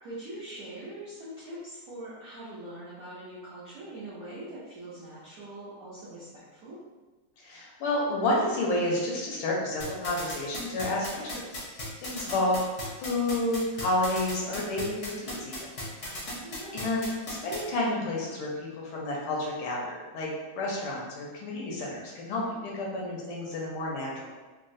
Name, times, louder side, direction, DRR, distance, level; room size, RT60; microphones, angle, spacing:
voice 1, 0.0-6.8 16.0-16.8, right 1 dB, 70° right, -10 dB, 0.8 m, -43 dB
voice 2, 7.4-12.6 13.0-15.7 16.7-18.5 18.8-20.3 20.5-24.3, left 1 dB, 85° left, -2 dB, 1.6 m, -30 dB
sound 1, 9.8-17.6, left 1 dB, 60° left, 0.7 m, -36 dB
3.8 x 2.2 x 2.6 m, 1.3 s
omnidirectional pair, 2.3 m